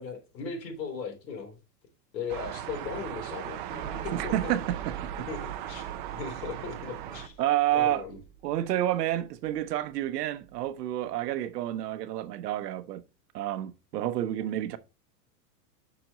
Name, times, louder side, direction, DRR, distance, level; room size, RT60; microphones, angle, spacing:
voice 1, 0.0-1.6 2.1-4.5 5.3-7.4 7.7-8.2, left 5 dB, 85° left, 3.7 m, -38 dB
sound 1, 2.3-7.3, right 11 dB, 35° right, 0.5 m, -38 dB
sound 2, 3.7-10.0 10.4-10.6, right 7 dB, 15° right, 1.3 m, -44 dB
voice 2, 4.1-5.0 7.4-8.0 8.4-13.0 13.3-14.8, right 13 dB, 75° right, 0.9 m, -29 dB
6.1 x 6.0 x 3.7 m
supercardioid pair, 165°, 49 cm